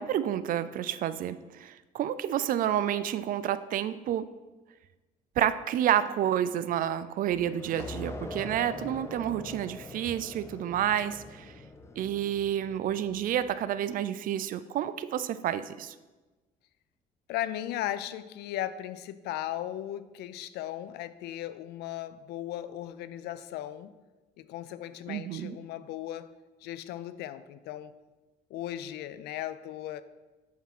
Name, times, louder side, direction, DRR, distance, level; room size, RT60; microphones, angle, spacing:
voice 1, 0.0-4.3 5.4-11.5 12.0-15.9 25.1-25.6, right 10 dB, 55° right, 14 dB, 0.4 m, -29 dB
sound 1, 7.3-13.7, left 2 dB, 15° left, 0.6 m, -43 dB
voice 2, 17.3-23.9 24.4-26.3 26.6-27.9 28.5-30.0, left 12 dB, 80° left, 14 dB, 0.4 m, -37 dB
7.2 x 3.6 x 5.9 m, 1.2 s
cardioid pair, 110°, 17 cm